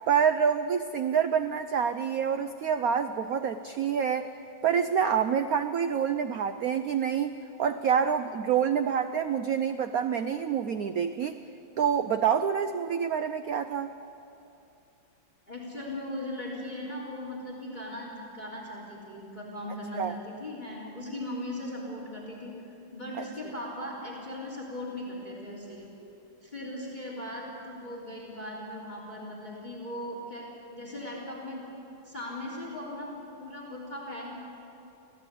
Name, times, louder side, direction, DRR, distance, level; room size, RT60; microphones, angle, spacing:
voice 1, 0.1-4.3 4.6-7.3 7.6-11.4 11.8-13.9 20.0-20.1 23.2-23.3, right 7 dB, 75° right, 10 dB, 0.8 m, -27 dB
voice 2, 15.5-25.9 26.4-31.6 32.0-33.1 33.4-34.3, left 1 dB, 20° left, -2 dB, 3.5 m, -38 dB
25.5 x 16.5 x 8.4 m, 2.8 s
omnidirectional pair, 2.3 m